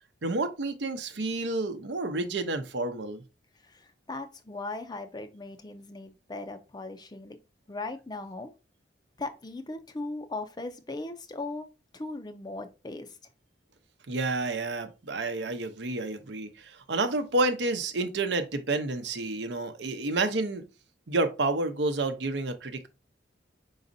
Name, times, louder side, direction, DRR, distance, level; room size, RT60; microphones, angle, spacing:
voice 1, 0.2-3.2 14.1-20.6 21.1-22.9, right 2 dB, 75° right, 0.7 m, -30 dB
voice 2, 3.6-7.4 7.7-8.5 9.2-11.7 11.9-13.2, left 2 dB, 25° left, 0.5 m, -38 dB
5.1 x 4.0 x 2.6 m
head